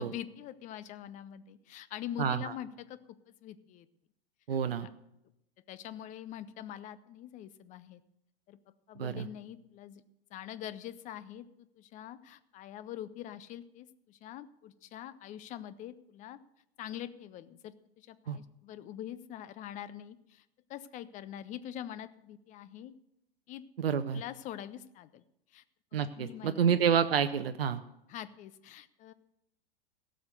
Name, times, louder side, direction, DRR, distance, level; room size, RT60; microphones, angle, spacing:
voice 1, 0.0-3.9 4.5-4.9 5.7-8.0 8.5-8.6 8.9-10.0 10.3-16.4 16.8-20.4 20.7-22.9 23.5-23.7 24.1-25.2 25.5-25.6 26.1-26.8 28.1-29.1, left 11 dB, 25° left, 15 dB, 0.6 m, -44 dB
voice 2, 2.2-2.5 4.5-4.9 9.0-9.3 18.3-18.4 23.8-24.2 25.9-27.8, right 7 dB, 75° right, 10 dB, 0.7 m, -28 dB
16.5 x 6.5 x 6.6 m, 0.83 s
figure-of-eight pair, 95°, 30 cm